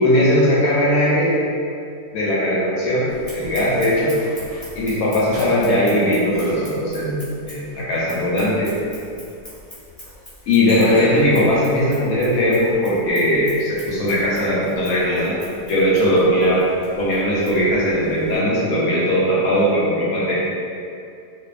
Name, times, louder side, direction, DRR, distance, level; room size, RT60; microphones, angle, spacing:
voice 1, 0.0-1.3 2.1-3.1 3.3-4.1 4.7-7.2 7.5-8.7 10.5-15.3 15.6-16.6 17.0-20.3, equal, 70° left, -7 dB, 0.9 m, -19 dB
Scissors, 3.1-18.4, equal, 30° left, 0.4 m, -40 dB
2.5 x 2.3 x 2.4 m, 2.5 s
omnidirectional pair, 1.8 m